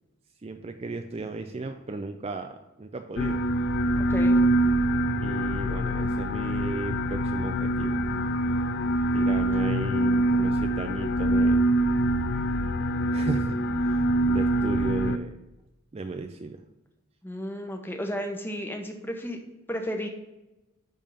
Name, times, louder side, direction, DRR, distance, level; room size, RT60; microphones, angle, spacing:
voice 1, 0.4-3.4 5.2-8.1 9.1-11.6 13.1-15.4 15.9-16.6, right 2 dB, 25° right, 7 dB, 0.4 m, -35 dB
sound 1, 3.2-15.2, right 1 dB, 50° left, 0.4 m, -24 dB
voice 2, 4.0-4.4 17.2-19.4 19.7-20.1, equal, 10° left, 4 dB, 1.0 m, -33 dB
10.5 x 3.6 x 5.4 m, 1.0 s
head